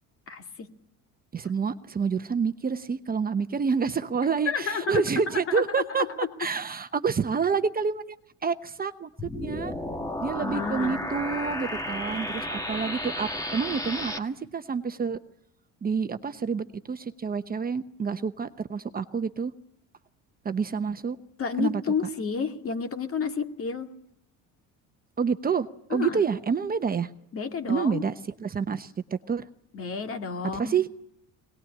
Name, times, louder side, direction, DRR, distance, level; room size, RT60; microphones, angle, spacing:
voice 1, 0.3-0.7 4.5-6.3 10.4-11.0 21.4-23.9 25.9-26.2 27.3-28.0 29.7-30.8, left 5 dB, 35° left, 6 dB, 2.3 m, -30 dB
voice 2, 1.3-6.0 6.4-8.2 8.4-9.7 10.2-15.2 15.8-19.5 20.4-21.2 21.6-21.8 25.2-27.1 27.7-28.1 28.4-28.9 29.3-29.5 30.5-30.9, right 6 dB, 25° right, 10 dB, 0.9 m, -28 dB
sound 1, 9.2-14.2, left 1 dB, 10° left, 1.7 m, -33 dB
22.5 x 19.0 x 10.0 m, 0.79 s
cardioid pair, 130°, 37 cm